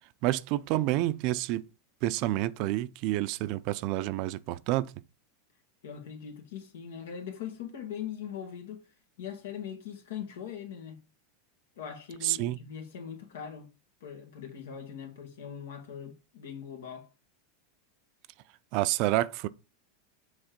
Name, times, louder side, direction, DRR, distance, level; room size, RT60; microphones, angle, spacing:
voice 1, 0.2-1.6 2.0-4.9 12.2-12.6 18.7-19.5, right 16 dB, 55° right, 0.5 m, -28 dB
voice 2, 5.8-8.9 9.2-11.0 11.8-13.7 14.0-17.1, left 8 dB, 85° left, 2.0 m, -41 dB
7.1 x 3.2 x 5.2 m
supercardioid pair, 130°, 0 cm